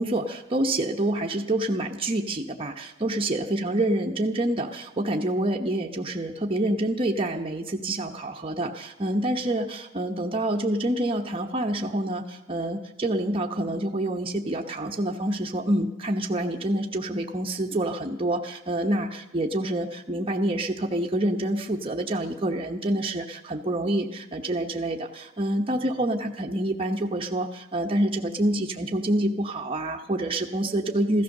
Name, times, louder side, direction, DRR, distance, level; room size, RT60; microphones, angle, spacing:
voice 1, 0.0-19.1 19.3-31.2, right 1 dB, 25° right, 1 dB, 1.0 m, -27 dB
15.5 x 13.5 x 6.6 m, 0.95 s
head